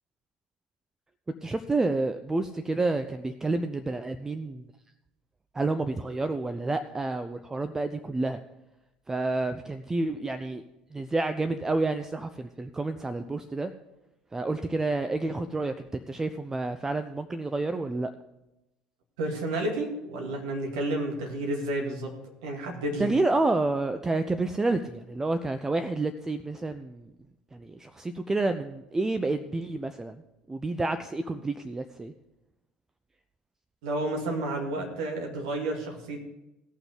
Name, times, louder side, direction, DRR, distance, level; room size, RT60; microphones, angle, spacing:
voice 1, 1.4-4.6 5.5-8.4 9.1-10.6 10.9-13.7 14.3-18.1 23.0-27.1 27.5-30.2 30.5-32.1, right 2 dB, 15° right, 9 dB, 0.5 m, -29 dB
voice 2, 19.2-22.1 22.4-23.1 33.8-36.2, right 1 dB, 65° right, 1 dB, 2.1 m, -31 dB
17.5 x 5.9 x 5.0 m, 0.94 s
figure-of-eight pair, 65°, 3 cm